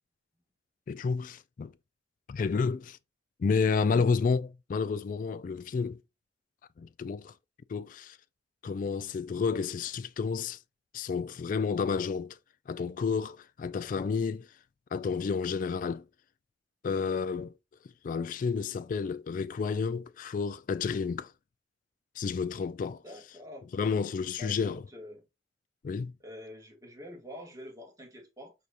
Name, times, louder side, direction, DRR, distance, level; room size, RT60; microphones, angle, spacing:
voice 1, 0.9-1.7 2.3-3.0 3.4-6.0 6.8-7.3 7.7-8.2 8.6-10.6 10.9-12.4 12.7-14.5 14.9-16.0 16.8-17.5 18.0-21.3 22.2-23.0 23.7-24.8 25.8-26.1, left 5 dB, 50° left, 0.3 m, -30 dB
voice 2, 22.9-23.7 24.4-25.2 26.2-28.5, left 1 dB, 20° right, 1.8 m, -46 dB
4.7 x 4.2 x 2.5 m
head